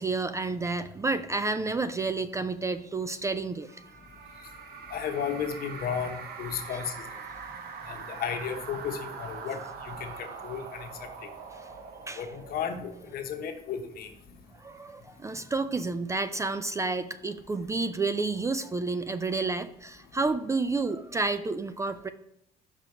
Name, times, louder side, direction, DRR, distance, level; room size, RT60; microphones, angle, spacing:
voice 1, 0.0-3.8 11.5-11.7 12.1-12.2 14.5-22.1, right 3 dB, 20° right, 11 dB, 0.3 m, -30 dB
sound 1, 3.7-13.4, right 6 dB, 70° right, 1.0 m, -43 dB
voice 2, 4.9-7.0 7.9-10.9 12.2-14.1, left 7 dB, 60° left, 5 dB, 1.0 m, -34 dB
5.8 x 5.2 x 4.6 m, 0.76 s
cardioid pair, 110°, 17 cm